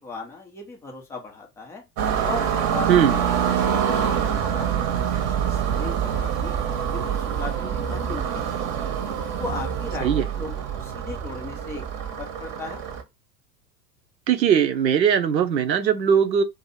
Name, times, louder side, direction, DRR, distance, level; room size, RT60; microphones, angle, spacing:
voice 1, 0.0-1.8 2.2-6.6 6.9-8.9 9.4-12.8, left 3 dB, 5° left, 0.3 m, -37 dB
sound 1, 2.0-13.0, right 8 dB, 35° right, 0.8 m, -26 dB
voice 2, 14.3-16.4, right 8 dB, 85° right, 0.6 m, -19 dB
2.6 x 2.6 x 3.9 m
figure-of-eight pair, 85°, 50 cm